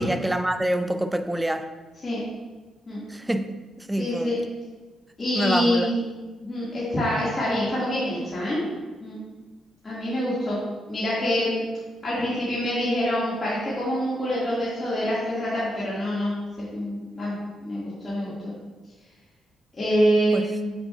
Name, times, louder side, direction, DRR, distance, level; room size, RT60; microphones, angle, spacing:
voice 1, 0.0-1.7 3.1-4.5 5.3-5.9 20.3-20.5, right 1 dB, 10° right, 9 dB, 0.5 m, -26 dB
voice 2, 4.0-4.4 5.2-6.0 6.4-8.6 9.0-9.2 9.8-10.6 10.9-11.6 12.0-16.3 16.7-17.4 17.6-18.5 19.8-20.7, equal, 30° left, -9 dB, 2.1 m, -25 dB
7.8 x 6.2 x 2.5 m, 1.3 s
cardioid pair, 90°, 0 cm